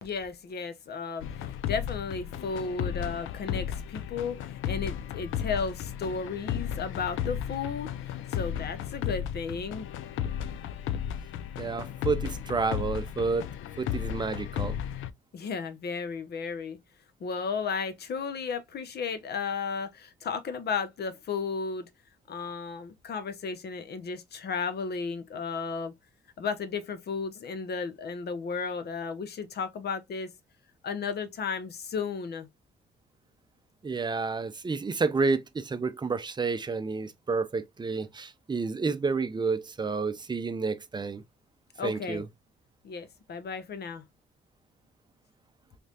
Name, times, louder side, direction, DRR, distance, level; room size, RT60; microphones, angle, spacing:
voice 1, 0.0-9.9 15.3-16.8 17.2-21.9 22.3-26.0 26.4-30.3 30.8-32.5 41.8-42.2 42.8-44.0, left 5 dB, 55° left, 0.8 m, -34 dB
sound 1, 1.2-15.1, left 9 dB, 80° left, 0.5 m, -34 dB
voice 2, 11.6-13.5 13.8-14.8 33.8-41.2 41.8-42.3, right 4 dB, 20° right, 0.6 m, -30 dB
3.3 x 3.1 x 2.7 m
cardioid pair, 90°, 20 cm